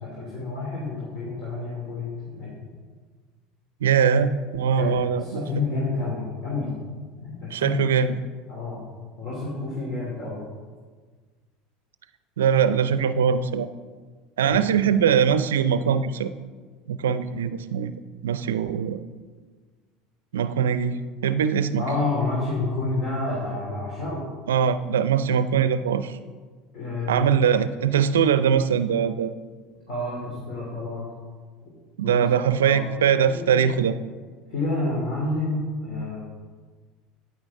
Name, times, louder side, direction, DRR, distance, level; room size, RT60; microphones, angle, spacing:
voice 1, 0.0-2.6 4.7-6.7 7.2-7.7 8.5-8.8 9.2-10.4 14.4-14.6 21.8-24.3 26.7-27.3 29.9-31.1 32.0-32.8 33.3-33.7 34.5-36.2, left 2 dB, 50° left, -5 dB, 3.0 m, -29 dB
voice 2, 3.8-5.4 7.5-8.2 12.4-13.7 14.4-16.3 16.9-17.9 18.2-19.0 20.3-21.8 24.5-26.2 27.1-29.4 32.0-33.9, right 7 dB, 80° right, 13 dB, 0.4 m, -22 dB
9.5 x 9.0 x 3.7 m, 1.5 s
hypercardioid pair, 80°, 0 cm